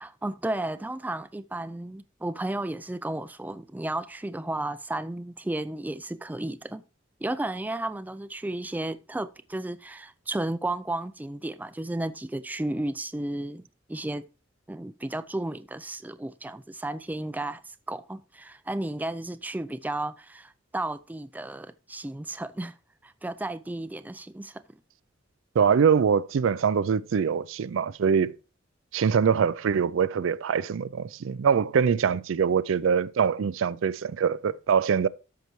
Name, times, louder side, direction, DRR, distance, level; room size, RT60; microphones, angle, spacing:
voice 1, 0.0-6.8 7.2-13.6 13.9-14.2 14.7-22.7 23.0-24.6, right 1 dB, 10° right, 0.3 m, -33 dB
voice 2, 25.6-28.4 28.9-35.1, right 6 dB, 85° right, 0.4 m, -23 dB
13.0 x 5.7 x 3.1 m
head